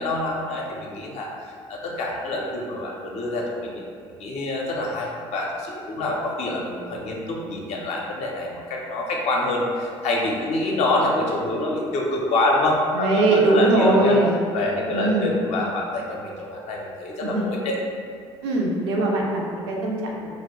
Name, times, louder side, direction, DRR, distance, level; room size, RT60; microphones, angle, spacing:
voice 1, 0.0-3.8 4.2-14.2 14.5-17.8, left 2 dB, 50° left, -2 dB, 0.5 m, -26 dB
voice 2, 12.9-14.4 14.9-15.3 17.2-17.5 18.4-20.3, right 2 dB, 70° right, -1 dB, 0.4 m, -21 dB
2.2 x 2.0 x 2.9 m, 2.2 s
figure-of-eight pair, 55°, 15 cm